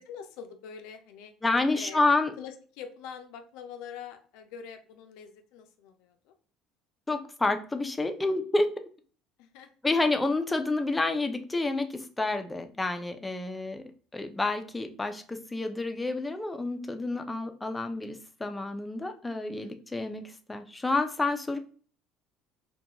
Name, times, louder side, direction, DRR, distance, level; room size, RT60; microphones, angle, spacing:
voice 1, 0.0-1.3 1.7-6.3 9.4-9.7 13.4-13.7 19.6-19.7, left 7 dB, 80° left, 6 dB, 0.4 m, -45 dB
voice 2, 1.4-2.3 7.1-8.7 9.8-13.8 14.1-21.6, left 2 dB, 10° left, 7 dB, 0.4 m, -29 dB
2.4 x 2.2 x 2.8 m, 0.42 s
cardioid pair, 115°, 0 cm